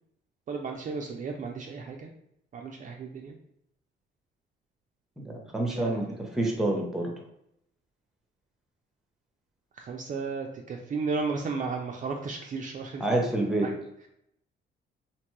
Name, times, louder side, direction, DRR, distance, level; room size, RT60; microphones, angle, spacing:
voice 1, 0.5-2.1 2.5-3.4 5.6-6.2 9.7-13.1 13.6-13.8, right 4 dB, 40° right, 1 dB, 0.4 m, -34 dB
voice 2, 5.5-6.1 6.4-7.1 13.0-13.7, right 1 dB, ahead, 0 dB, 0.7 m, -27 dB
2.9 x 2.2 x 3.0 m, 0.76 s
cardioid pair, 90°, 20 cm